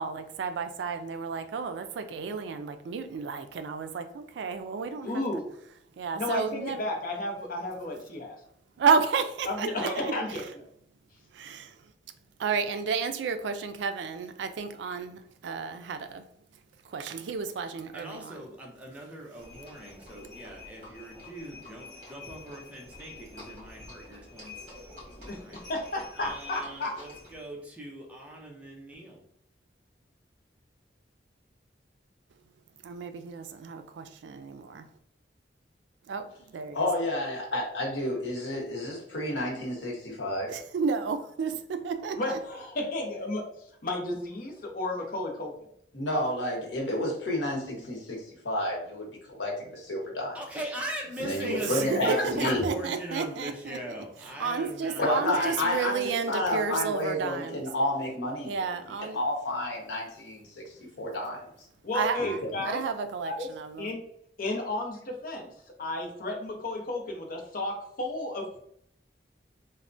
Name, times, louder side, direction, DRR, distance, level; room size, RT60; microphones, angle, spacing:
voice 1, 0.0-5.2 6.0-6.9 8.8-10.1 11.3-11.8 12.4-16.2 16.8-18.4 32.8-34.9 36.1-36.9 40.5-42.4 51.4-53.8 54.2-57.6 58.5-59.2 61.9-62.4 62.7-63.9, right 5 dB, 75° right, 0.3 m, -32 dB
voice 2, 5.0-5.5 6.2-8.4 9.5-10.6 25.2-26.9 42.1-43.4 43.8-45.5 52.2-52.5 55.0-55.1 61.8-62.8 63.2-63.5 63.8-64.0 64.4-65.5 65.8-68.6, left 2 dB, 50° left, 0.6 m, -33 dB
voice 3, 17.9-24.8 25.3-25.6 26.2-29.2 50.3-56.0, right 1 dB, 10° right, 0.5 m, -40 dB
Livestock farm animals working animals, 19.4-27.5, left 2 dB, 45° right, 1.3 m, -47 dB
voice 4, 36.7-40.5 45.9-50.3 51.2-52.6 55.0-58.5 59.1-60.5 61.0-61.4 62.2-62.5, left 1 dB, 90° left, 0.9 m, -30 dB
3.2 x 2.1 x 2.5 m
head